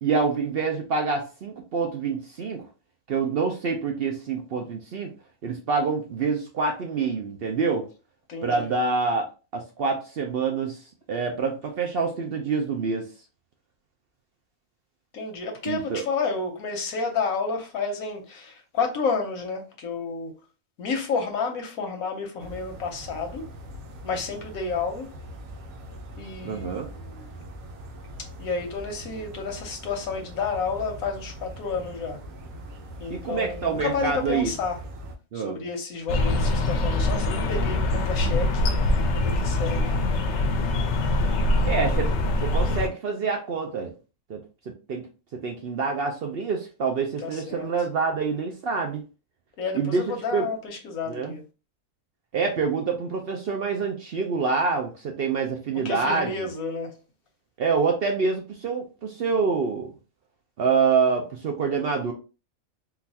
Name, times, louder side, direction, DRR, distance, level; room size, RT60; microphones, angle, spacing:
voice 1, 0.0-2.7 3.1-5.1 5.4-7.9 8.4-10.8 11.1-13.1 15.7-16.0 26.4-26.9 33.1-34.5 35.3-35.6 41.6-42.1 42.4-43.9 44.3-44.4 44.7-45.0 45.3-49.0 49.7-50.1 50.3-50.5 51.1-51.3 52.3-56.3 57.6-59.9 60.6-62.1, right 5 dB, 60° right, 0.6 m, -26 dB
voice 2, 8.3-8.7 15.1-20.3 20.8-23.5 24.0-25.1 26.2-27.4 28.4-32.2 33.0-34.8 35.3-39.9 47.2-47.7 49.6-51.4 55.8-57.0, left 4 dB, 90° left, 1.2 m, -31 dB
sound 1, 22.4-35.1, equal, 80° right, 1.2 m, -42 dB
sound 2, 36.1-42.9, left 2 dB, 65° left, 0.8 m, -23 dB
3.9 x 2.4 x 2.7 m
omnidirectional pair, 1.4 m